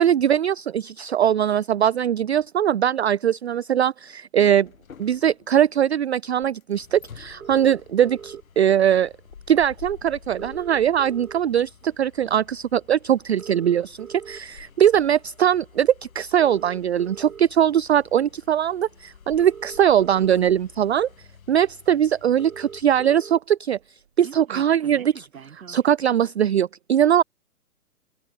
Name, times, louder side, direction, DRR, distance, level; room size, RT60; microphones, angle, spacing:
voice 1, 0.0-4.7 5.0-9.1 9.5-21.1 21.5-23.8 24.2-25.3 25.5-27.2, right 10 dB, 45° right, 0.4 m, -21 dB
sound 1, 4.6-23.1, left 7 dB, 60° left, 6.4 m, -50 dB
sound 2, 7.4-8.4 9.6-9.7 9.9-10.0 10.2-11.7 12.2-12.4 13.2-14.4 15.1-15.3 16.2-17.4 18.6-18.7 19.2-20.4 21.1-21.2 21.5-21.6 21.8-21.9 22.1-23.4 23.7-25.9, right 7 dB, 65° right, 4.2 m, -41 dB
open air
figure-of-eight pair, 135°, 46 cm